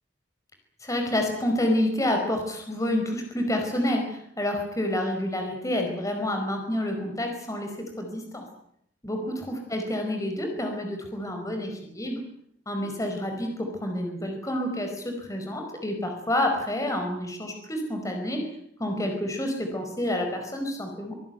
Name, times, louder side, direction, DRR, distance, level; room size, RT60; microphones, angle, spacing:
voice 1, 0.8-8.4 9.0-12.2 12.7-18.5 18.8-21.2, left 1 dB, 20° left, 4 dB, 4.9 m, -28 dB
25.0 x 19.5 x 9.3 m, 0.74 s
head